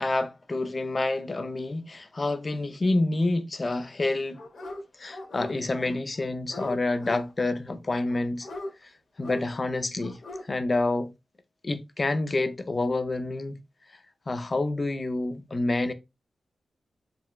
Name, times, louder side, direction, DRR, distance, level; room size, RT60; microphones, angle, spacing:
voice 1, 0.0-4.4 5.0-8.5 8.8-8.9 9.2-11.1 11.6-13.6 14.3-15.9, left 2 dB, 35° left, 0.4 m, -28 dB
Dog, 4.3-4.8 5.1-5.9 6.1-7.2 7.9-8.7 9.2-9.4 10.0-10.4 10.7-10.8, left 1 dB, 70° left, 0.9 m, -39 dB
3.9 x 2.0 x 2.3 m
wide cardioid pair, 100°, 0 cm